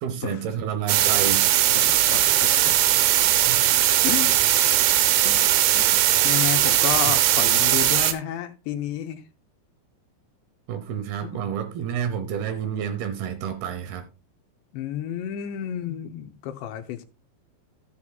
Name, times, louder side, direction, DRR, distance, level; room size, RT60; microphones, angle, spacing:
voice 1, 0.0-1.5 3.5-3.6 7.1-7.2 10.7-14.1, right 8 dB, 75° right, 2.5 m, -29 dB
sound 1, 0.9-8.1, right 12 dB, 90° right, 3.4 m, -19 dB
voice 2, 1.9-2.7 3.2-3.3 4.0-4.4 5.2-6.0 6.2-9.2 11.2-11.4 14.7-17.1, left 11 dB, 80° left, 3.0 m, -31 dB
15.0 x 8.4 x 2.3 m
omnidirectional pair, 5.2 m